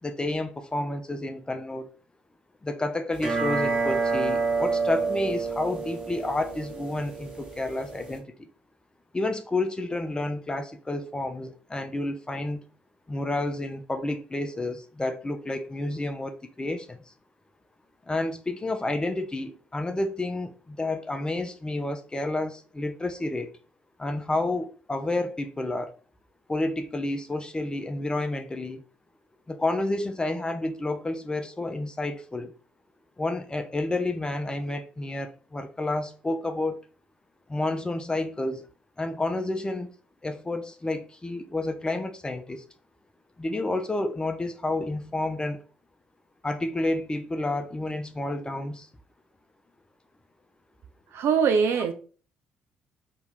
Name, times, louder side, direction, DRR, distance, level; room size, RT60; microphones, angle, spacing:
voice 1, 0.0-1.9 2.6-8.3 9.1-12.6 13.1-17.0 18.1-23.5 24.0-25.9 26.5-28.8 29.5-32.5 33.2-36.8 37.5-38.7 39.0-39.9 40.2-42.6 43.4-45.6 46.4-48.9, left 2 dB, 15° left, 0.4 m, -30 dB
sound 1, 3.2-8.2, right 4 dB, 15° right, 1.2 m, -28 dB
voice 2, 51.1-51.9, right 6 dB, 55° right, 0.5 m, -22 dB
2.9 x 2.7 x 3.3 m
figure-of-eight pair, 45°, 5 cm